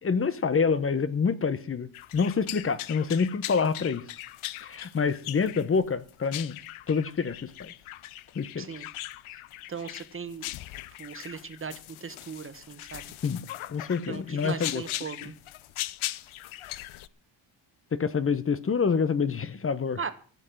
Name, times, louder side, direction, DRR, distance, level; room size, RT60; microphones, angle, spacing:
voice 1, 0.0-4.0 4.6-6.6 6.9-7.7 8.3-8.7 13.2-13.4 13.7-14.8 17.9-20.0, left 5 dB, 25° left, 0.8 m, -27 dB
sound 1, 1.9-17.1, left 15 dB, 75° left, 0.8 m, -40 dB
voice 2, 8.6-8.9 9.3-9.4 9.7-10.5 11.0-13.1 14.1-15.3 20.0-20.1, right 5 dB, 25° right, 1.3 m, -38 dB
15.0 x 7.8 x 7.7 m
cardioid pair, 145°, 49 cm